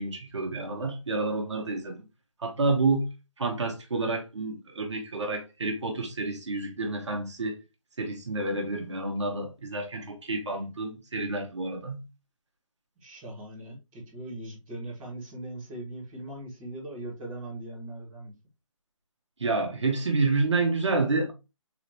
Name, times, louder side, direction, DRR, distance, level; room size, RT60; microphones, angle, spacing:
voice 1, 0.0-2.0 2.4-3.1 3.4-7.6 8.0-12.0 19.4-21.3, right 3 dB, 60° right, 1.4 m, -29 dB
voice 2, 13.0-18.3, right 1 dB, 10° right, 1.4 m, -40 dB
4.0 x 3.9 x 3.0 m
hypercardioid pair, 175°, 17 cm